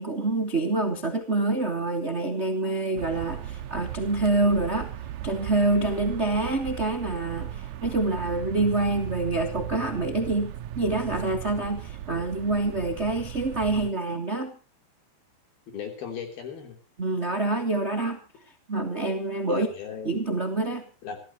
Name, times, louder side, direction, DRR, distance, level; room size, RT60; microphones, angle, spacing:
voice 1, 0.0-4.9 5.2-14.5 17.0-18.2 18.7-19.7 20.0-20.8, right 2 dB, 65° right, 5 dB, 0.6 m, -26 dB
sound 1, 3.0-13.9, right 12 dB, 90° right, 1.6 m, -37 dB
voice 2, 15.7-16.8 19.5-20.4 21.0-21.2, left 7 dB, 60° left, 5 dB, 5.2 m, -37 dB
27.0 x 13.5 x 3.0 m, 0.34 s
omnidirectional pair, 4.9 m